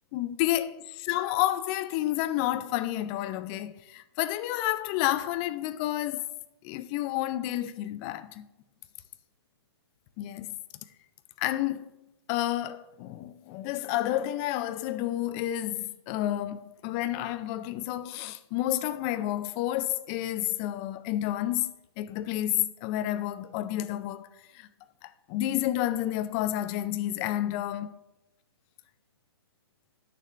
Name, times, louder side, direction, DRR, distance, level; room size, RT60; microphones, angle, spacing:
voice 1, 0.1-6.2 6.6-8.5 10.2-10.6 11.4-12.0 12.3-24.3 24.5-24.7 25.0-27.9, left 14 dB, 25° left, 0.4 m, -30 dB
11.5 x 6.7 x 3.2 m
hypercardioid pair, 145°, 14 cm